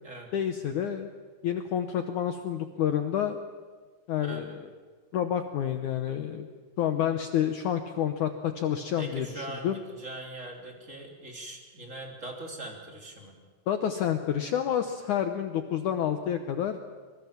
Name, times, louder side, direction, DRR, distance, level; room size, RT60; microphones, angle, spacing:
voice 1, 0.3-1.1 1.4-3.4 4.1-4.6 5.1-6.5 6.8-9.8 13.7-16.8, left 9 dB, 75° left, 7 dB, 1.8 m, -29 dB
voice 2, 9.0-13.3, right 1 dB, 20° right, 1 dB, 3.2 m, -41 dB
25.5 x 22.0 x 7.3 m, 1.5 s
omnidirectional pair, 4.8 m